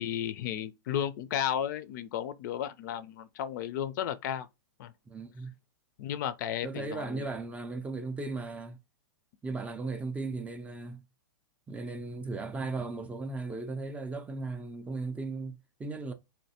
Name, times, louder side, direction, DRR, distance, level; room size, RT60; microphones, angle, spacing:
voice 1, 0.0-4.5 4.8-4.9 6.0-7.2, left 10 dB, 55° left, 0.4 m, -33 dB
voice 2, 5.1-5.5 6.6-8.8 9.4-11.0 11.7-16.1, right 3 dB, 10° right, 0.4 m, -36 dB
3.3 x 2.6 x 2.7 m
hypercardioid pair, 125°, 12 cm